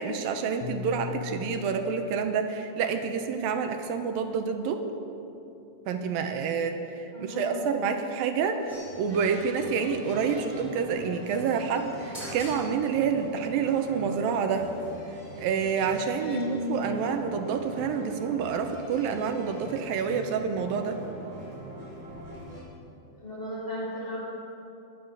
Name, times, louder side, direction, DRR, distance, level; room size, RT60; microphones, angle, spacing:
voice 1, 0.0-4.8 5.9-14.7 15.4-21.0, right 6 dB, 75° right, 6 dB, 2.6 m, -28 dB
Piano, 0.6-5.0, left 7 dB, 70° left, 2.9 m, -42 dB
voice 2, 7.1-7.7 16.2-16.7 23.2-24.2, equal, 15° left, -6 dB, 5.0 m, -34 dB
sound 1, 8.7-22.6, right 1 dB, 10° right, 4.4 m, -43 dB
22.5 x 9.5 x 6.6 m, 2.8 s
omnidirectional pair, 4.3 m